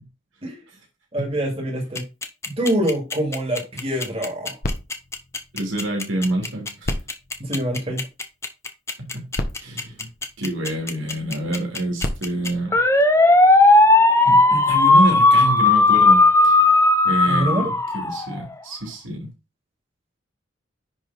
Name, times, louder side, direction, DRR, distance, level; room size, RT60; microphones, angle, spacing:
voice 1, 1.1-2.0 2.5-4.6 7.4-8.1 17.3-17.7, right 1 dB, 30° right, 2.7 m, -25 dB
sound 1, 2.0-18.4, left 2 dB, 15° left, 0.8 m, -16 dB
sound 2, 4.6-6.3 6.8-8.4 9.1-9.2 9.3-10.9 11.7-13.6 14.3-14.4, left 1 dB, 45° left, 1.0 m, -33 dB
voice 2, 5.5-6.9 9.0-9.3 9.6-10.1 10.4-12.8 14.2-16.6 17.0-19.3, right 1 dB, 85° right, 3.0 m, -27 dB
10.0 x 3.7 x 4.2 m
head